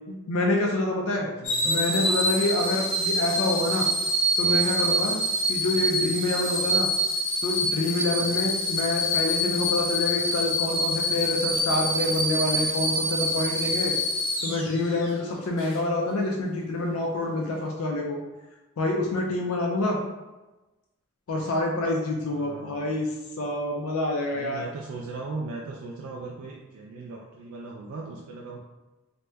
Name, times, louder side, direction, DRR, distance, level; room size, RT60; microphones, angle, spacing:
voice 1, 0.1-1.3 1.6-3.9 4.4-5.2 5.5-6.9 7.4-13.9 14.4-18.2 18.8-20.0 21.3-24.6, left 2 dB, 85° left, 0 dB, 0.4 m, -27 dB
voice 2, 1.1-2.1 2.5-2.6 5.2-5.3 8.2-8.3 15.1-15.3 19.3-19.4 22.2-23.0 24.3-28.6, right 3 dB, 85° right, -2 dB, 0.3 m, -39 dB
sound 1, 1.4-15.1 15.6-15.8, equal, 65° left, 0.9 m, -26 dB
2.7 x 2.1 x 3.3 m, 1.1 s
head